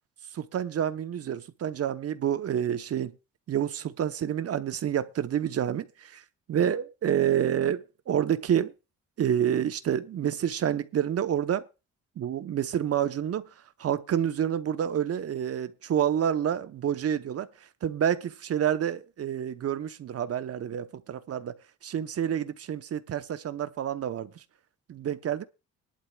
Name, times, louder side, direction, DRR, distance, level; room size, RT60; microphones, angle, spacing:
voice 1, 0.3-3.1 3.5-8.7 9.2-11.7 12.2-21.5 21.8-24.4 24.9-25.4, right 9 dB, 50° right, 0.8 m, -28 dB
19.5 x 11.5 x 2.3 m
cardioid pair, 90°, 30 cm